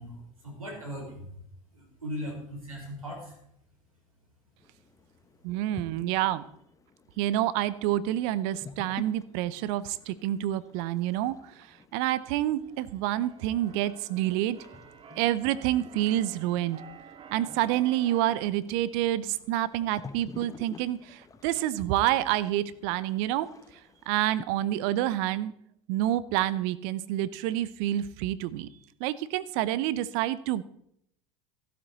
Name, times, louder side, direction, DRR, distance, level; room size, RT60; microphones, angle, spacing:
voice 1, 0.0-1.4 1.7-3.4, equal, 90° right, 0 dB, 5.2 m, -39 dB
sound 1, 4.6-24.4, left 5 dB, 20° left, 1.3 m, -51 dB
voice 2, 5.4-6.4 7.2-11.4 11.9-14.6 15.2-16.8 17.3-23.5 24.1-25.5 25.9-28.7 29.0-30.6, right 13 dB, 55° right, 16 dB, 0.8 m, -28 dB
Keyboard (musical), 12.6-18.5, right 7 dB, 30° right, 1.1 m, -50 dB
14.0 x 12.0 x 4.1 m, 0.71 s
hypercardioid pair, 80°, 17 cm